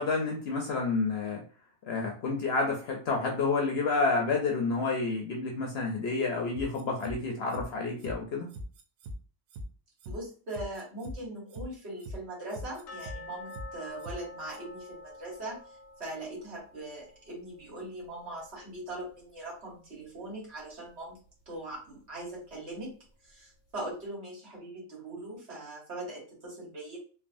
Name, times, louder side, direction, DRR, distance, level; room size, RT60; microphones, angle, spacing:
voice 1, 0.0-1.4 1.9-8.5, left 3 dB, 60° left, 0 dB, 0.7 m, -29 dB
sound 1, 6.6-7.2 7.5-7.6 8.0-8.1 8.5-9.1 9.5-9.6 10.0-10.2 10.5-11.2 11.5-11.6 12.0-12.1 12.5-13.2 13.5-13.6 14.0-14.2 14.5-14.6, equal, 85° right, 1.0 m, -40 dB
voice 2, 10.1-21.2 21.5-22.9 23.2-27.0, right 1 dB, 55° right, -4 dB, 1.5 m, -41 dB
sound 2, 12.9-19.7 20.0-20.1 20.6-20.7 21.3-21.4, left 3 dB, 90° left, 1.0 m, -49 dB
3.3 x 2.1 x 2.5 m, 0.41 s
omnidirectional pair, 1.3 m